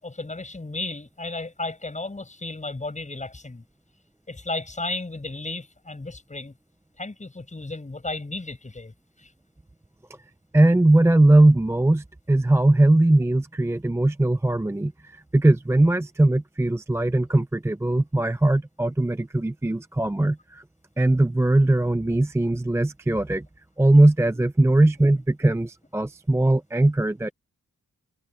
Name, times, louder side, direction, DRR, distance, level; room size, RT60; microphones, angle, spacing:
voice 1, 0.0-3.6 4.3-6.5 7.0-8.9 9.2-9.3 24.3-24.4, left 2 dB, 25° left, 7.2 m, -34 dB
voice 2, 10.5-20.6 21.0-23.5 23.8-27.3, right 1 dB, 10° right, 0.5 m, -20 dB
wide cardioid pair, 130°, 31 cm